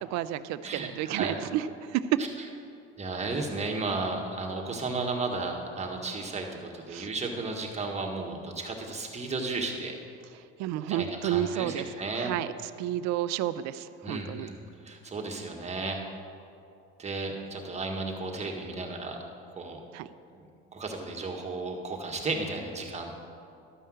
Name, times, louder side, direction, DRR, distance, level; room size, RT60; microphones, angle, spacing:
voice 1, 0.0-2.0 6.9-7.1 10.6-11.9 12.2-14.5 19.9-20.1, right 12 dB, 65° right, 14 dB, 0.6 m, -31 dB
voice 2, 0.6-1.3 2.2-2.3 3.0-9.9 10.9-12.3 14.0-14.5 14.8-16.0 17.0-19.2 19.5-19.8 20.3-20.4 20.7-23.2, right 3 dB, 20° right, 1 dB, 1.6 m, -34 dB
12.5 x 5.6 x 7.7 m, 2.5 s
supercardioid pair, 105°, 30 cm